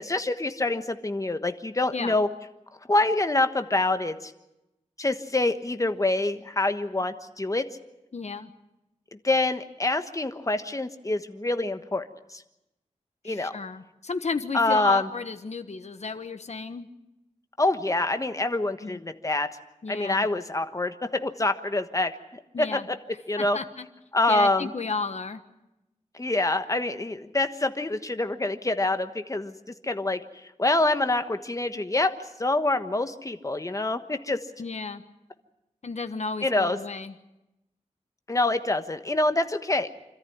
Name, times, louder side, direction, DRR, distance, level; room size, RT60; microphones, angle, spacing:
voice 1, 0.0-2.3 2.9-4.3 5.0-7.7 9.2-12.0 12.3-12.4 13.2-13.5 14.5-15.0 17.6-19.5 19.9-22.1 22.6-22.9 23.3-23.6 24.1-24.7 26.1-29.5 29.8-30.2 30.6-32.1 32.4-34.4 36.4-36.8 38.3-39.9, left 2 dB, 25° left, 9 dB, 1.3 m, -26 dB
voice 2, 8.1-8.5 13.2-16.9 18.8-19.0 19.8-20.3 22.5-22.9 23.4-23.9 24.3-25.4 34.6-35.0 35.8-37.1, left 4 dB, 60° left, 10 dB, 1.3 m, -33 dB
26.0 x 13.5 x 9.4 m, 0.93 s
wide cardioid pair, 90°, 13 cm